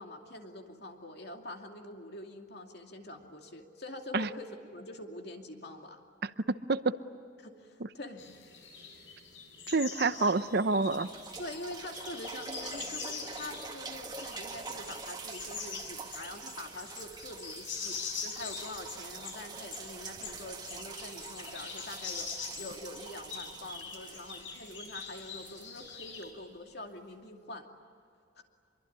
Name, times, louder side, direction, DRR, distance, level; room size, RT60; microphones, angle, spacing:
voice 1, 0.0-6.0 7.4-8.2 10.2-10.4 11.4-27.7 28.4-28.5, left 1 dB, 55° left, 3 dB, 2.6 m, -45 dB
sound 1, 8.2-26.3, left 5 dB, 70° left, 5.9 m, -44 dB
voice 2, 9.7-11.1, right 3 dB, 55° right, 12 dB, 0.8 m, -27 dB
sound 2, 10.7-26.5 27.1-27.2, right 4 dB, 20° right, 1.8 m, -45 dB
26.0 x 23.0 x 9.7 m, 2.4 s
head